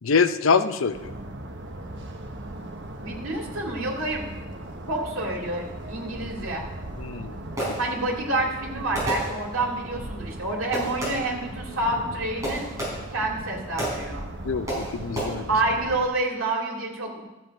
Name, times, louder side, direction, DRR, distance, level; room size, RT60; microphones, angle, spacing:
voice 1, 0.0-1.1 7.0-7.4 7.7-7.8 14.4-15.5, left 5 dB, 85° left, 11 dB, 0.6 m, -24 dB
sound 1, 0.9-16.1, right 1 dB, 60° right, 1.1 m, -38 dB
voice 2, 3.0-4.3 4.9-6.6 7.8-12.6 13.1-14.3 15.5-17.2, right 2 dB, 85° right, 0 dB, 2.3 m, -28 dB
Fireworks, 7.6-8.2 8.9-9.8 10.7-11.4 12.4-13.3 13.8-14.2 14.7-15.2, right 1 dB, 15° right, 4.4 m, -31 dB
13.0 x 7.7 x 5.3 m, 1.1 s
head